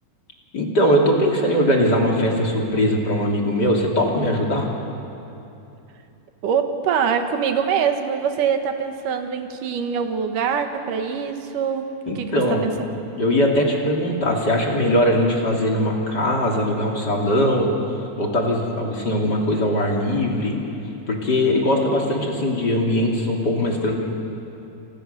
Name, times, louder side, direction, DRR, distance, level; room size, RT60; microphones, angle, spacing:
voice 1, 0.5-4.7 12.1-12.7 13.2-17.7 18.2-20.6 21.1-23.9, equal, 35° left, 0 dB, 3.2 m, -20 dB
voice 2, 6.4-12.7, right 7 dB, 85° right, 6 dB, 3.0 m, -24 dB
29.0 x 28.5 x 6.9 m, 2.8 s
omnidirectional pair, 3.7 m